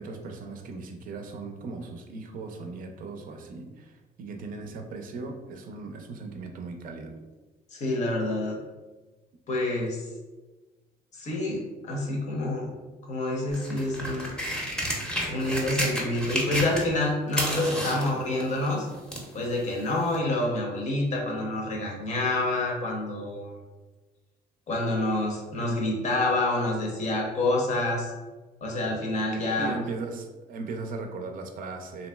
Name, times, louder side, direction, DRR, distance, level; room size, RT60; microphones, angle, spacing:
voice 1, 0.0-7.1 29.6-32.1, right 3 dB, 55° right, 4 dB, 0.5 m, -38 dB
voice 2, 7.7-8.6 9.5-10.1 11.1-12.7 13.1-14.3 15.3-18.9 19.3-23.6 24.7-28.1 28.6-29.8, left 2 dB, 45° left, -1 dB, 0.7 m, -27 dB
sound 1, 13.5-17.0 17.3-19.3 20.1-20.2, equal, 5° left, 0.7 m, -31 dB
2.9 x 2.6 x 2.2 m, 1.2 s
cardioid pair, 110°, 17 cm